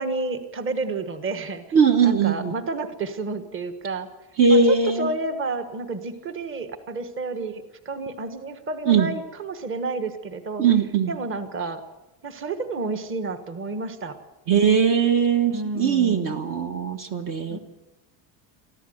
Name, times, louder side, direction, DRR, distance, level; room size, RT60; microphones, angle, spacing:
voice 1, 0.0-1.6 2.0-4.1 4.5-10.6 11.1-11.8 12.2-14.2 15.5-16.4 17.5-17.6, right 3 dB, 25° right, 9 dB, 1.4 m, -30 dB
voice 2, 1.7-2.5 4.4-5.1 8.9-9.1 10.6-11.1 14.5-17.6, right 6 dB, 45° right, 6 dB, 1.3 m, -20 dB
23.5 x 14.5 x 7.9 m, 1.1 s
cardioid pair, 160°, 47 cm